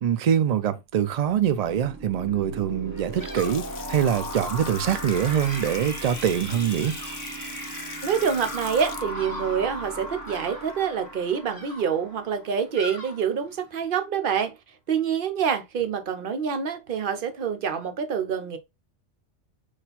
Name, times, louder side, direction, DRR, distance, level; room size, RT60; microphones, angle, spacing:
voice 1, 0.0-6.9, right 9 dB, 80° right, 0.3 m, -24 dB
sound 1, 1.2-12.6, right 1 dB, 15° right, 0.8 m, -37 dB
Bird vocalization bird call bird song, 2.9-13.8, left 1 dB, 20° left, 0.9 m, -46 dB
Water tap faucet / Sink (filling or washing) / Splash splatter, 3.0-11.1, left 8 dB, 70° left, 0.8 m, -42 dB
voice 2, 8.0-14.5 14.9-18.6, right 7 dB, 50° right, 0.8 m, -26 dB
4.3 x 2.5 x 3.9 m
omnidirectional pair, 1.2 m